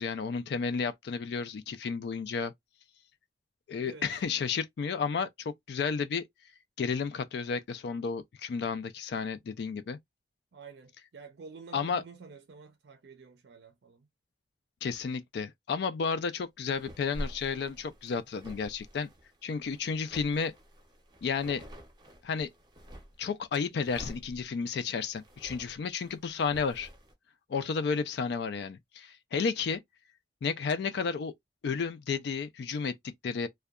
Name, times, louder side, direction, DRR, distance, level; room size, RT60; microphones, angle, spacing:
voice 1, 0.0-2.5 3.7-6.3 6.8-10.0 11.7-12.0 14.8-19.1 19.4-20.5 21.2-21.7 22.2-22.5 23.2-26.9 27.5-29.8 30.4-31.3 31.6-33.5, left 5 dB, 65° left, 0.3 m, -32 dB
voice 2, 10.5-14.1 19.5-19.8 27.5-27.7, right 5 dB, 70° right, 0.5 m, -50 dB
sound 1, 16.6-23.2 23.8-27.1, equal, 25° right, 0.6 m, -47 dB
2.6 x 2.2 x 2.3 m
head